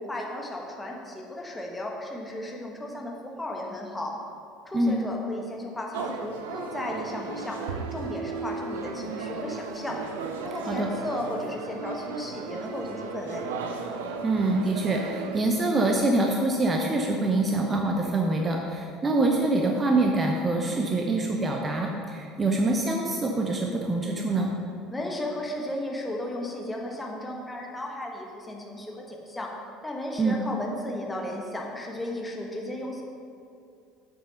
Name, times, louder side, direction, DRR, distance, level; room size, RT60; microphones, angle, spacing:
voice 1, 0.0-4.1 4.6-7.6 7.9-10.0 10.4-13.4 24.9-29.5 29.8-33.0, left 1 dB, 10° left, -1 dB, 1.6 m, -35 dB
sound 1, 5.9-15.4, right 4 dB, 70° right, 0.6 m, -35 dB
voice 2, 14.2-24.5 30.2-30.4, right 2 dB, 25° right, 1 dB, 0.8 m, -25 dB
8.0 x 6.4 x 5.8 m, 2.5 s
figure-of-eight pair, 65°, 0 cm